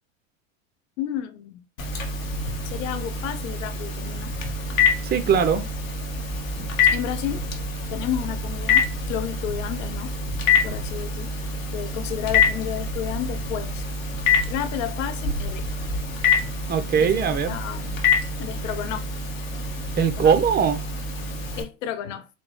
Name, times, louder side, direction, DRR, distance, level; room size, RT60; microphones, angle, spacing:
voice 1, 1.0-1.6 2.6-4.3 6.8-7.5 7.9-10.2 10.6-11.3 11.7-13.9 14.4-15.8 17.0-18.0 18.4-19.1 20.2-20.4 21.6-22.3, left 11 dB, 70° left, 0.8 m, -32 dB
Telephone, 1.8-21.6, left 4 dB, 90° left, 1.0 m, -26 dB
voice 2, 5.0-5.7 16.7-17.6 20.0-20.8, right 7 dB, 25° right, 0.7 m, -20 dB
4.1 x 2.2 x 3.1 m
hypercardioid pair, 95°, 39 cm